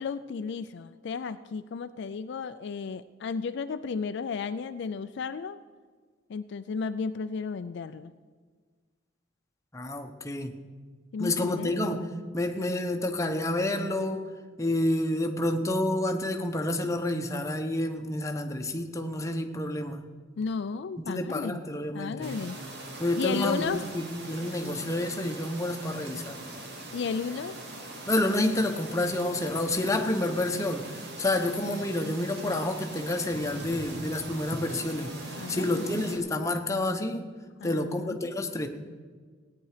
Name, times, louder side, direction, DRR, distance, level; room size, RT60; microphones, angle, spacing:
voice 1, 0.0-5.6 6.3-8.1 11.1-11.7 20.4-21.6 21.9-22.6 23.2-23.9 26.9-27.5 32.0-32.1 35.4-35.9 37.6-38.2, left 5 dB, 60° left, 11 dB, 0.4 m, -33 dB
voice 2, 9.7-10.5 11.2-12.1 12.3-14.2 14.6-20.0 21.1-22.4 23.0-26.4 28.1-30.9 31.2-35.1 35.5-37.3 37.6-38.7, left 1 dB, 15° left, 4 dB, 0.9 m, -29 dB
sound 1, 22.2-36.2, right 1 dB, 60° right, 1.9 m, -41 dB
17.5 x 9.3 x 4.9 m, 1.5 s
head